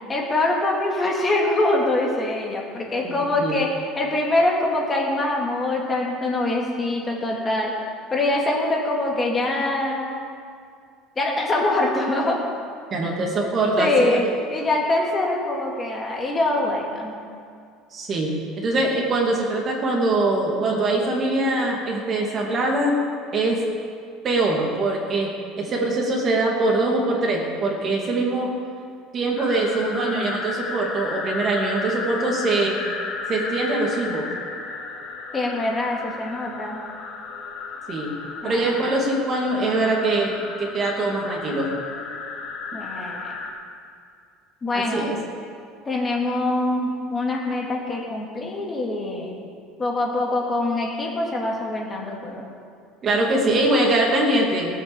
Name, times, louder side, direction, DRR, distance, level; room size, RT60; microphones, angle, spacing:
voice 1, 0.1-7.7 8.1-10.2 11.2-12.4 13.4-14.2 14.5-17.2 35.3-36.8 38.4-38.9 42.7-43.3 44.6-45.1 45.8-49.4 49.8-52.5, left 2 dB, 20° left, -1 dB, 2.2 m, -24 dB
voice 2, 3.0-3.6 12.9-14.3 17.9-23.0 23.3-23.6 24.2-28.5 29.1-32.8 33.3-34.3 37.9-38.1 38.4-41.7 44.7-45.2 53.0-54.7, right 2 dB, 35° right, -1 dB, 2.5 m, -23 dB
sound 1, 29.3-43.5, left 4 dB, 50° left, 3.3 m, -33 dB
16.5 x 8.2 x 7.1 m, 2.3 s
cardioid pair, 145°, 0 cm